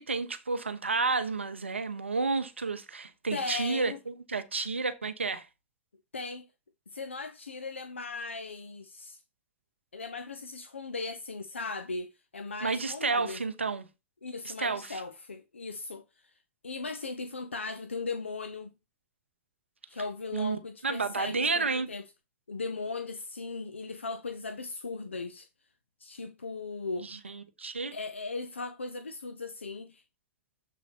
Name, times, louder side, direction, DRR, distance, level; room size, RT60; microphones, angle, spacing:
voice 1, 0.0-5.5 12.6-13.8 14.4-15.0 20.3-20.6 20.8-21.9 27.0-27.9, right 4 dB, 85° right, 0.7 m, -31 dB
voice 2, 3.3-4.0 6.1-6.5 6.9-9.2 9.9-13.4 14.2-16.4 16.6-18.7 19.9-22.0 22.5-25.5 26.0-27.1 27.9-30.0, left 4 dB, 85° left, 0.5 m, -38 dB
7.3 x 4.0 x 4.3 m
figure-of-eight pair, 85°, 6 cm